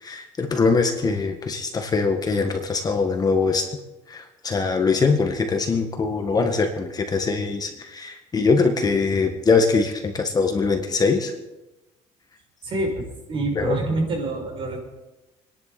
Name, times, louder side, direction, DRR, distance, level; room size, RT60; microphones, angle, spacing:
voice 1, 0.0-3.7 4.1-11.3 13.6-13.8, left 4 dB, 30° left, 5 dB, 1.8 m, -22 dB
voice 2, 12.6-13.0 13.3-14.8, right 2 dB, 45° right, 0 dB, 6.5 m, -26 dB
28.5 x 11.0 x 4.3 m, 0.99 s
cardioid pair, 115°, 12 cm